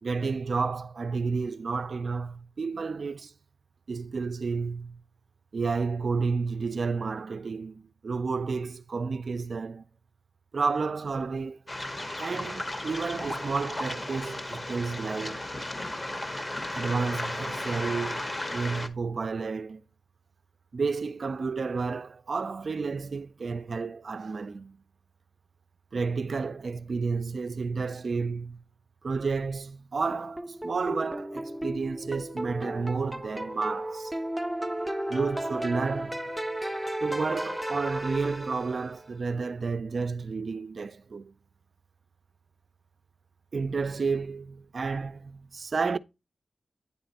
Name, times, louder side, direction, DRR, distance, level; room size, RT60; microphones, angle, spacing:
voice 1, 0.0-3.3 3.9-5.0 5.5-9.9 10.5-11.6 12.2-15.5 16.7-19.8 20.7-24.8 25.9-28.6 29.0-34.1 35.1-36.2 37.0-41.3 43.5-46.0, right 4 dB, 60° right, 0.3 m, -31 dB
Waves surf, 11.7-18.9, left 1 dB, 30° left, 0.9 m, -35 dB
sound 1, 30.1-39.0, right 1 dB, 5° right, 0.6 m, -34 dB
9.3 x 3.3 x 4.1 m
cardioid pair, 65°, 0 cm